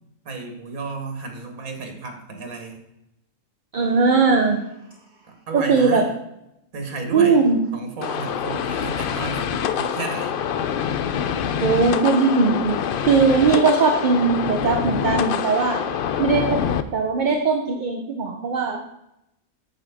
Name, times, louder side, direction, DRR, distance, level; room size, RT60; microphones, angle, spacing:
voice 1, 0.3-2.8 5.2-6.1 6.7-7.5 7.7-10.3, right 3 dB, 85° right, 4 dB, 1.8 m, -32 dB
voice 2, 3.7-4.6 5.5-6.0 7.1-7.6 11.6-12.8 13.1-15.8 16.2-16.6 16.9-18.8, right 4 dB, 45° right, 4 dB, 0.7 m, -19 dB
sound 1, 8.0-16.8, left 8 dB, 70° left, 0.5 m, -25 dB
8.6 x 7.1 x 3.5 m, 0.86 s
omnidirectional pair, 1.4 m